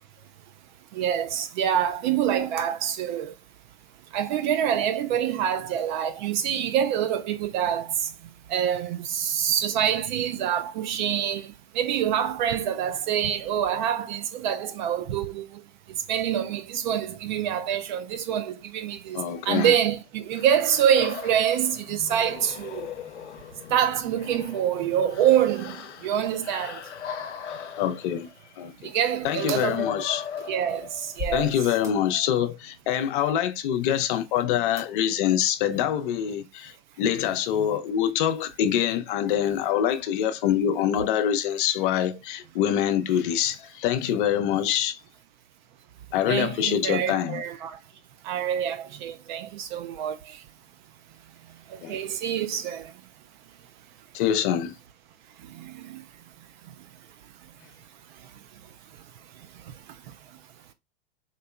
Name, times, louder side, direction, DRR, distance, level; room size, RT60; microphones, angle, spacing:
voice 1, 0.9-3.3 4.1-7.9 8.5-11.5 11.7-15.4 16.1-19.2 19.5-22.9 23.7-25.8 26.0-26.8 28.8-30.1 30.4-31.5 46.3-47.8 48.2-50.2 51.7-52.9 55.6-56.0, right 9 dB, 45° right, 0.4 m, -26 dB
voice 2, 19.1-19.7 27.8-28.3 28.6-28.9 29.2-30.2 31.3-45.0 46.1-47.4 51.8-52.0 54.1-54.7, left 10 dB, 50° left, 0.6 m, -25 dB
sound 1, 20.3-31.4, left 8 dB, 90° left, 0.6 m, -39 dB
sound 2, 29.5-30.5 31.2-32.1 34.8-35.4 35.7-35.8 36.0-36.1, left 2 dB, 10° right, 0.8 m, -39 dB
3.8 x 2.8 x 2.2 m
hypercardioid pair, 110°, 34 cm